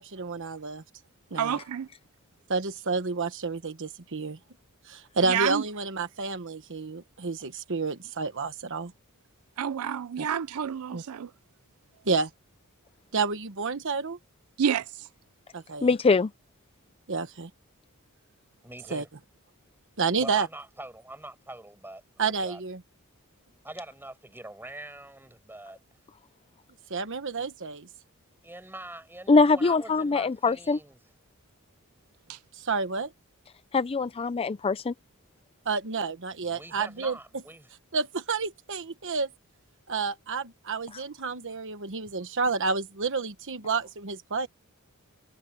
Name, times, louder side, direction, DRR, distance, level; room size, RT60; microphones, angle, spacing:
voice 1, 0.2-0.8 1.3-1.6 2.5-4.4 4.9-8.9 10.2-10.3 10.9-11.0 12.1-12.3 13.1-14.2 15.5-15.9 17.1-17.5 18.9-19.0 20.0-20.5 22.2-22.8 26.9-27.9 32.6-33.1 35.7-37.2 37.9-39.3 39.9-44.5, right 4 dB, 60° right, 1.2 m, -30 dB
voice 2, 1.4-1.9 5.3-5.6 9.6-11.3 14.6-15.1 32.3-32.4, right 8 dB, 80° right, 0.4 m, -29 dB
voice 3, 15.8-16.3 29.3-30.8 33.7-34.9, left 4 dB, 25° left, 0.4 m, -22 dB
voice 4, 18.6-19.1 20.2-22.6 23.6-25.8 27.4-27.5 28.4-31.0 36.4-37.7, right 1 dB, 10° right, 5.7 m, -44 dB
head